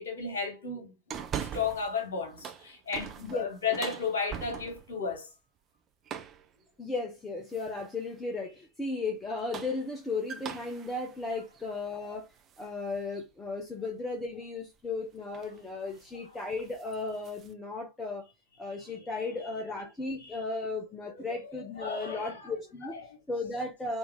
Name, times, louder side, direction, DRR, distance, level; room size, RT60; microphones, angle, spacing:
voice 1, 0.0-5.3 19.2-19.3 20.2-20.4 21.2-22.3 23.1-23.2, left 5 dB, 65° left, 1.8 m, -34 dB
sound 1, 1.1-1.9 2.3-5.0 6.0-6.5 7.5-7.9 9.2-12.7 13.1-13.2 14.8-15.0 15.3-15.6 15.9-16.1 16.5-17.5, right 8 dB, 25° right, 0.7 m, -42 dB
voice 2, 3.2-3.8 6.8-12.3 12.6-18.2 18.6-23.0 23.3-24.0, left 3 dB, 10° left, 0.9 m, -35 dB
4.4 x 2.8 x 3.6 m
figure-of-eight pair, 90°, 0 cm